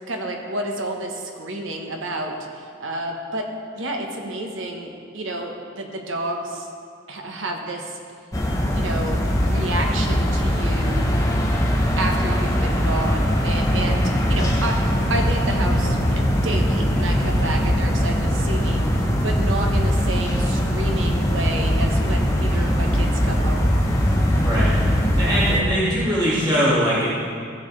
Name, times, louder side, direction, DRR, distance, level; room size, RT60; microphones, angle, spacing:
voice 1, 0.1-3.5 3.7-6.7 7.1-8.0 8.7-11.1 12.0-14.8 15.1-18.8 19.2-23.7, right 2 dB, 80° right, 2 dB, 1.1 m, -30 dB
sound 1, 8.3-25.6, equal, 15° left, 0.9 m, -21 dB
voice 2, 24.4-24.7 25.2-27.1, equal, 20° right, -9 dB, 1.9 m, -21 dB
15.5 x 6.5 x 3.2 m, 2.2 s
head